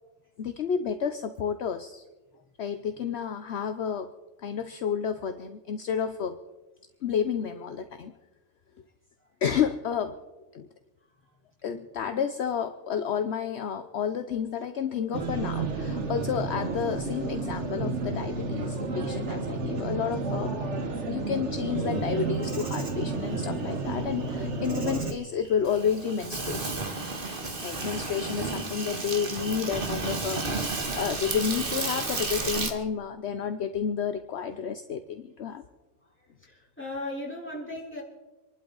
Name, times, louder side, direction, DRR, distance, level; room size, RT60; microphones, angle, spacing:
voice 1, 0.4-2.0 2.6-4.1 4.4-6.4 7.0-8.1 9.4-10.2 10.5-10.7 11.6-20.5 21.0-26.8 27.6-35.6, left 7 dB, 60° left, 8 dB, 1.0 m, -30 dB
sound 1, 15.1-25.1, right 3 dB, 65° right, 1.6 m, -31 dB
Insect, 22.1-32.7, right 3 dB, 45° right, 1.7 m, -33 dB
voice 2, 36.0-38.0, left 1 dB, 10° left, -4 dB, 4.2 m, -38 dB
27.0 x 11.5 x 4.0 m, 1.1 s
omnidirectional pair, 1.3 m